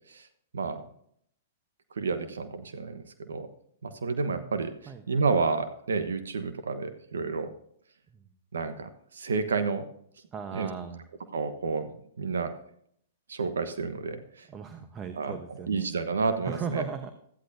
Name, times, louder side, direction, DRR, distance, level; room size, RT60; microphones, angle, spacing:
voice 1, 1.9-3.5 3.8-7.5 8.5-9.8 10.5-10.7 11.3-11.9 12.2-12.5 13.3-14.5 15.1-15.4 15.7-16.9, right 4 dB, 85° right, 9 dB, 1.1 m, -30 dB
voice 2, 10.3-11.0 14.5-15.9 16.4-17.1, right 6 dB, 25° right, 8 dB, 1.0 m, -37 dB
14.0 x 10.0 x 2.7 m, 0.66 s
hypercardioid pair, 125°, 0 cm